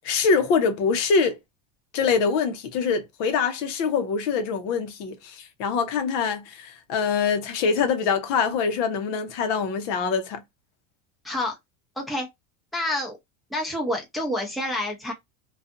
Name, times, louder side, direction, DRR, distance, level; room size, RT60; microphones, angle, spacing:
voice 1, 0.0-1.4 1.9-10.4, left 5 dB, 60° left, 0.8 m, -24 dB
voice 2, 11.2-11.5 12.0-12.3 12.7-13.2 13.5-15.1, left 1 dB, ahead, 0.7 m, -28 dB
2.4 x 2.4 x 2.6 m
supercardioid pair, 130°, 43 cm